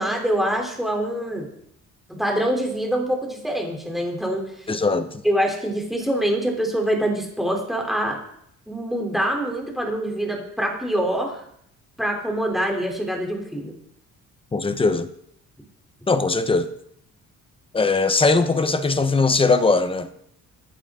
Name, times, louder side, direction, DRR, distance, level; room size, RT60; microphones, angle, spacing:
voice 1, 0.0-1.5 2.1-4.7 5.2-8.2 8.7-11.4 12.0-13.7, right 1 dB, ahead, 3.5 m, -25 dB
voice 2, 4.7-5.2 14.5-15.1 16.1-16.7 17.7-20.1, left 3 dB, 15° left, 1.0 m, -20 dB
19.5 x 15.0 x 3.8 m
cardioid pair, 165°, 32 cm